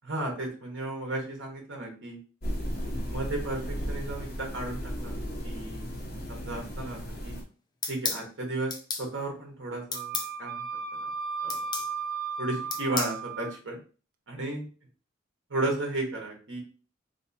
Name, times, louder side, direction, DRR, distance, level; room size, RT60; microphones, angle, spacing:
voice 1, 0.0-2.2 3.0-5.9 6.3-7.4 7.9-10.7 10.9-11.1 11.4-11.6 12.4-13.8 14.3-14.6 15.5-16.6, right 2 dB, 80° right, 0 dB, 1.2 m, -34 dB
sound 1, 2.4-7.4, equal, 50° left, 0.9 m, -35 dB
sound 2, 7.8-8.2 8.7-9.1 9.9-10.3 11.5-11.9 12.7-13.2, left 4 dB, 20° left, 0.4 m, -32 dB
Wind instrument woodwind instrument, 9.9-13.6, right 5 dB, 45° right, 0.4 m, -35 dB
3.4 x 2.9 x 2.8 m, 0.36 s
head